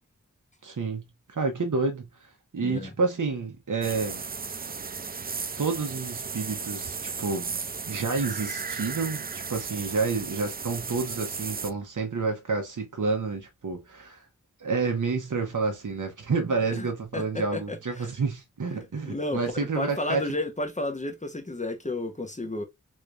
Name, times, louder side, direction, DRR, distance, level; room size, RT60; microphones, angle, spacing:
voice 1, 0.6-4.2 5.6-7.6 7.8-14.2 14.6-20.2, right 4 dB, 75° right, 0.9 m, -29 dB
voice 2, 2.6-2.9 16.7-16.9 17.1-18.1 19.1-22.6, left 2 dB, 25° left, 0.9 m, -32 dB
sound 1, 3.8-11.7, right 5 dB, 30° right, 0.4 m, -35 dB
3.6 x 3.2 x 2.5 m
wide cardioid pair, 50°, 31 cm